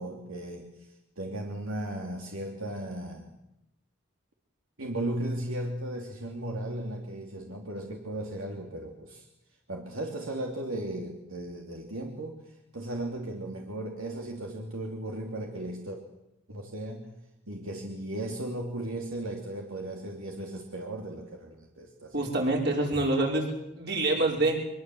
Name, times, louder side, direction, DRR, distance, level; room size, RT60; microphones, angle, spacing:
voice 1, 0.0-3.3 4.8-9.3 9.7-16.0 16.5-17.1 17.5-22.3, right 1 dB, 75° right, 1 dB, 2.9 m, -36 dB
voice 2, 22.1-23.5 23.8-24.6, right 2 dB, 50° right, 0 dB, 5.6 m, -26 dB
23.5 x 22.5 x 7.8 m, 0.86 s
head